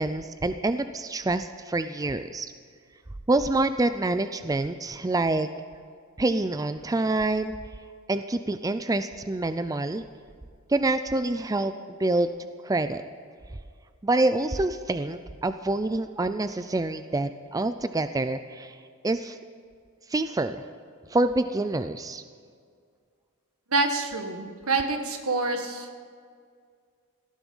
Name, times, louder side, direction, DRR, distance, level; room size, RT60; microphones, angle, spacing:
voice 1, 0.0-2.5 3.3-5.5 6.2-7.5 8.1-10.0 10.7-11.7 12.0-12.3 12.6-13.0 14.0-18.8 19.0-19.4 20.1-20.6 21.1-22.2, right 2 dB, 15° right, 10 dB, 0.4 m, -26 dB
voice 2, 23.7-26.0, right 3 dB, 75° right, 5 dB, 1.7 m, -27 dB
18.0 x 13.5 x 5.5 m, 2.1 s
head